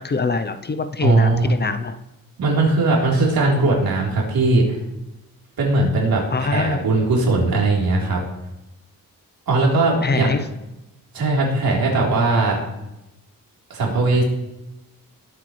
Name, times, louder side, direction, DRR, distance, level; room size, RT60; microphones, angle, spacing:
voice 1, 0.0-2.0 6.3-6.9 10.0-10.5, left 4 dB, 30° left, 10 dB, 0.6 m, -24 dB
voice 2, 1.0-1.6 2.4-4.8 5.6-8.2 9.5-10.4 11.1-12.6 13.7-14.2, right 2 dB, 80° right, -3 dB, 3.7 m, -19 dB
21.0 x 8.2 x 3.2 m, 0.96 s
wide cardioid pair, 130°, 35 cm